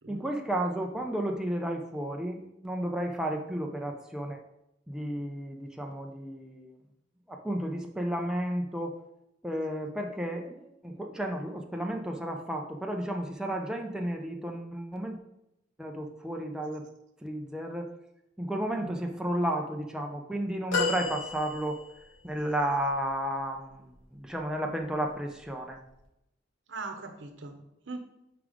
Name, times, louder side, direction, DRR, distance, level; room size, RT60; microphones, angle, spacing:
voice 1, 0.1-4.4 4.9-6.7 7.3-9.0 9.4-15.2 15.8-16.8 17.2-17.9 18.4-21.8 22.2-25.8, right 1 dB, 5° right, 1 dB, 0.5 m, -33 dB
voice 2, 18.8-19.1 26.7-28.0, right 3 dB, 70° right, 6 dB, 0.9 m, -41 dB
sound 1, 20.7-22.1 22.9-23.0, left 4 dB, 85° left, 1.7 m, -31 dB
5.3 x 4.8 x 4.9 m, 0.85 s
head